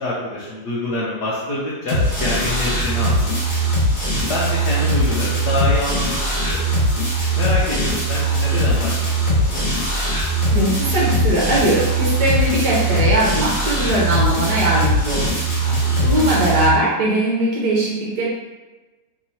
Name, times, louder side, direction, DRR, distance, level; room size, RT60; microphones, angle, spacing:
voice 1, 0.0-3.3 4.1-6.7 7.3-9.6 15.6-16.1, left 1 dB, 65° left, -7 dB, 1.0 m, -26 dB
sound 1, 1.9-16.7, right 1 dB, 45° left, 1.5 m, -20 dB
voice 2, 10.5-15.4 16.0-18.3, right 1 dB, 60° right, -6 dB, 1.3 m, -20 dB
3.5 x 3.0 x 2.7 m, 1.1 s
omnidirectional pair, 2.3 m